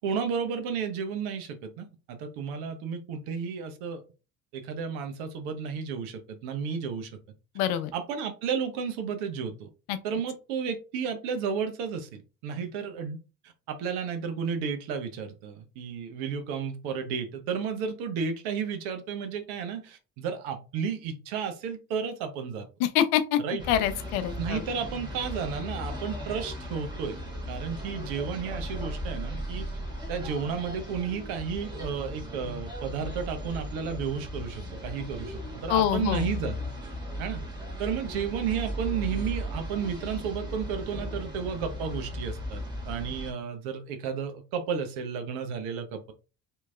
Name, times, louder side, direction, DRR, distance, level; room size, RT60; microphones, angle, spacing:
voice 1, 0.0-4.0 4.5-7.1 7.9-9.7 10.0-13.2 13.7-22.7 23.4-23.6 24.4-27.2 27.5-29.7 30.1-36.6 37.2-37.4 37.8-46.1, right 6 dB, 70° right, 0.8 m, -32 dB
voice 2, 7.6-7.9 9.9-10.0 22.8-23.4 23.7-24.6 35.7-36.3, left 11 dB, 65° left, 0.6 m, -25 dB
sound 1, 23.6-43.3, equal, 10° right, 1.2 m, -37 dB
2.9 x 2.7 x 2.4 m
hypercardioid pair, 60°, 40 cm